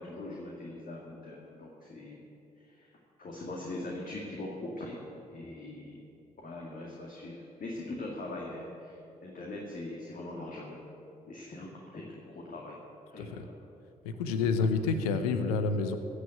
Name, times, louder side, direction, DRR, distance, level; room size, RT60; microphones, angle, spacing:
voice 1, 0.0-2.2 2.6-2.9 3.2-5.0 5.3-6.0 6.4-10.8 11.3-12.8 13.1-13.6, left 2 dB, 45° left, -2 dB, 2.3 m, -41 dB
voice 2, 14.0-16.0, left 4 dB, 80° left, 9 dB, 0.8 m, -29 dB
16.5 x 6.6 x 9.1 m, 2.8 s
hypercardioid pair, 40°, 19 cm